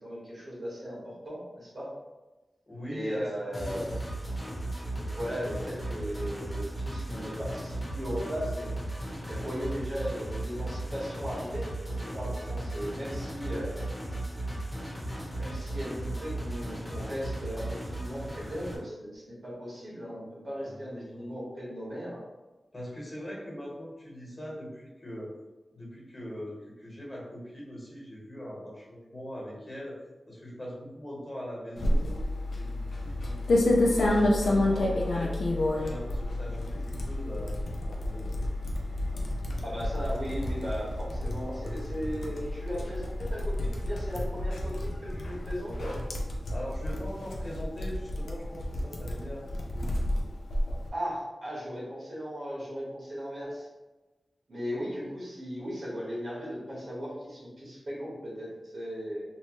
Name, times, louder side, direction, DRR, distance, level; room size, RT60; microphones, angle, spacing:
voice 1, 0.0-1.9 2.9-3.9 4.9-8.7 9.3-13.8 15.4-22.2 39.6-45.9 50.9-53.7 54.5-59.2, equal, 65° right, -6 dB, 1.3 m, -37 dB
voice 2, 2.7-4.0 20.6-21.4 22.7-25.3 25.7-32.2 32.5-35.4 35.7-37.6 37.9-38.3 46.5-49.5 49.7-49.9, equal, 35° left, -5 dB, 1.3 m, -41 dB
sound 1, 3.5-18.8, right 1 dB, 20° left, 1.0 m, -36 dB
sound 2, 31.8-50.9, left 1 dB, 85° left, 0.5 m, -30 dB
3.0 x 2.2 x 3.1 m, 1.1 s
cardioid pair, 60°, 0 cm